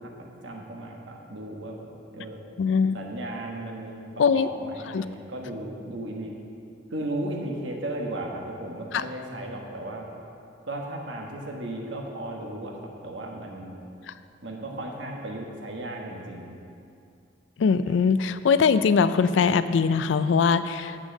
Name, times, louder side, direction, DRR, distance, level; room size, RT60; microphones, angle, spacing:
voice 1, 0.0-1.9 2.1-2.4 2.9-4.1 4.3-6.4 6.9-10.1 10.6-13.8 14.4-16.5, right 1 dB, 80° right, 0 dB, 1.3 m, -35 dB
voice 2, 2.6-3.0 4.2-4.5 4.9-5.1 8.9-9.0 14.1-14.2 17.6-21.0, left 5 dB, 75° left, 13 dB, 0.4 m, -22 dB
8.0 x 6.2 x 6.5 m, 2.5 s
head